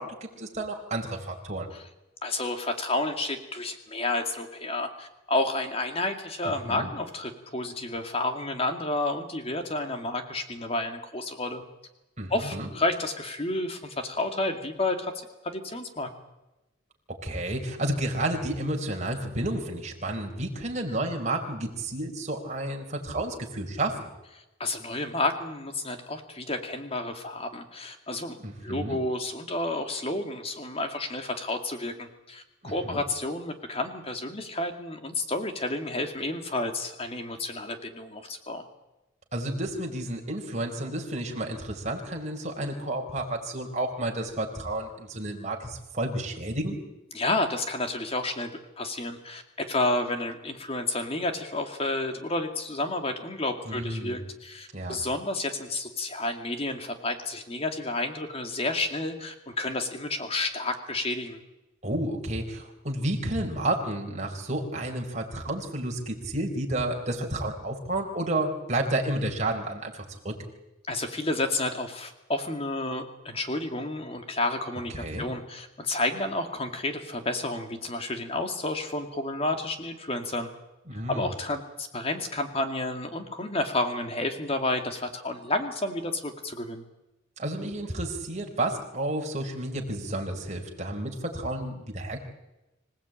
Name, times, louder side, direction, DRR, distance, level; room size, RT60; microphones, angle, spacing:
voice 1, 0.0-1.7 6.4-6.9 12.2-12.7 17.2-24.1 28.4-29.0 32.6-33.0 39.3-46.8 53.7-54.2 54.7-55.0 61.8-69.9 70.2-70.3 74.9-75.3 80.9-81.3 87.4-92.2, right 1 dB, 35° right, 1 dB, 4.2 m, -31 dB
voice 2, 2.2-11.6 12.3-15.1 15.4-16.1 24.6-38.7 47.1-48.5 48.8-61.4 70.9-80.5 80.9-86.8, left 2 dB, 30° left, 6 dB, 2.4 m, -30 dB
25.5 x 16.5 x 9.0 m, 0.98 s
head